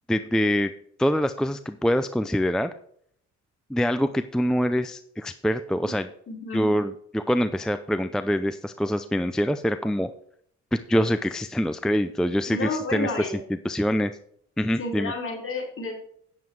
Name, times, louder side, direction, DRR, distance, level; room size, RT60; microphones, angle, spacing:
voice 1, 0.1-0.7 1.0-2.7 3.7-6.1 6.5-10.1 10.9-13.3 13.6-14.1 14.6-15.1, equal, ahead, 10 dB, 0.5 m, -25 dB
voice 2, 6.3-6.6 12.5-13.4 14.8-15.9, left 2 dB, 45° left, -2 dB, 4.8 m, -30 dB
9.2 x 7.8 x 4.8 m, 0.66 s
cardioid pair, 90°, 30 cm